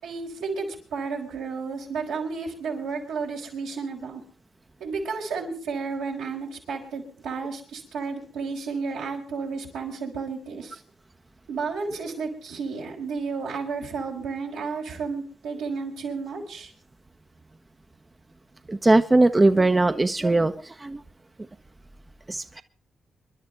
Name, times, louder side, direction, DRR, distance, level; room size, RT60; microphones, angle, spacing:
voice 1, 0.0-4.2 4.8-10.8 11.5-16.7, right 4 dB, 85° right, -3 dB, 4.7 m, -32 dB
voice 2, 18.7-21.0 22.3-22.6, right 2 dB, 25° right, 8 dB, 0.9 m, -20 dB
27.0 x 11.5 x 3.5 m, 0.40 s
hypercardioid pair, 45°, 0 cm